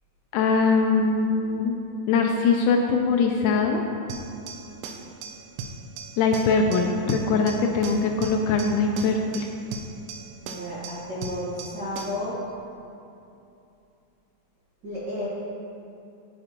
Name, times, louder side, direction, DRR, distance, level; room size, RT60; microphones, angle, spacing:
voice 1, 0.3-1.8 2.1-3.8 6.2-9.5, left 4 dB, 80° left, 2 dB, 1.9 m, -22 dB
sound 1, 4.1-12.3, right 4 dB, 80° right, 1.9 m, -39 dB
voice 2, 10.4-12.4 14.8-15.2, left 1 dB, 50° right, -10 dB, 1.3 m, -32 dB
10.5 x 8.9 x 2.9 m, 2.7 s
omnidirectional pair, 3.9 m